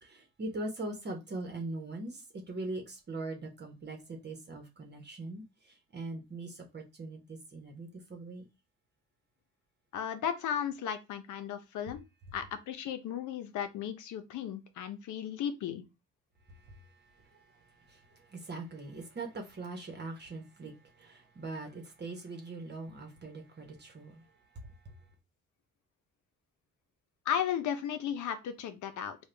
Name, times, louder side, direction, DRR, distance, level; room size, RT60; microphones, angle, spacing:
voice 1, 0.0-5.4 5.9-8.4 16.5-24.2 24.6-24.7, right 2 dB, 35° right, 1.0 m, -42 dB
voice 2, 9.9-12.0 12.3-15.8 27.3-29.2, left 9 dB, 75° left, 0.7 m, -35 dB
3.6 x 2.3 x 3.3 m
cardioid pair, 90°, 30 cm